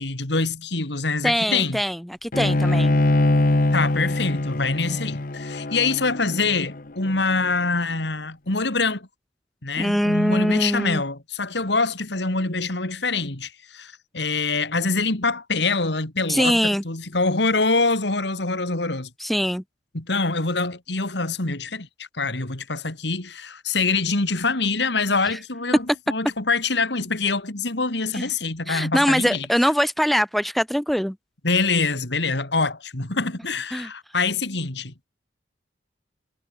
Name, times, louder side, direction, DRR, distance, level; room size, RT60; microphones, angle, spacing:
voice 1, 0.0-1.8 3.7-9.1 9.6-19.1 19.9-29.5 31.4-35.1, left 3 dB, 65° left, 2.6 m, -25 dB
voice 2, 1.2-3.0 9.8-11.0 16.3-16.8 19.2-19.6 25.3-25.4 28.1-28.3 28.7-31.2 33.7-33.9, equal, ahead, 0.3 m, -22 dB
Bowed string instrument, 2.3-7.6, left 2 dB, 50° left, 1.1 m, -23 dB
head